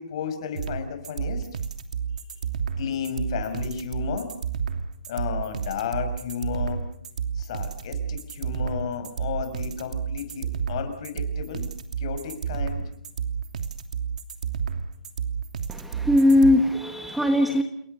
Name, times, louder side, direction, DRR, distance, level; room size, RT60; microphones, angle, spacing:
voice 1, 0.0-1.5 2.8-4.3 5.1-6.8 7.3-11.7 12.0-12.8, left 7 dB, 40° left, 7 dB, 5.9 m, -33 dB
sound 1, 0.5-16.5, right 7 dB, 60° right, 2.9 m, -30 dB
voice 2, 15.7-17.6, left 1 dB, ahead, 6 dB, 1.3 m, -20 dB
29.0 x 22.0 x 6.8 m, 0.68 s
hypercardioid pair, 160°, 4 cm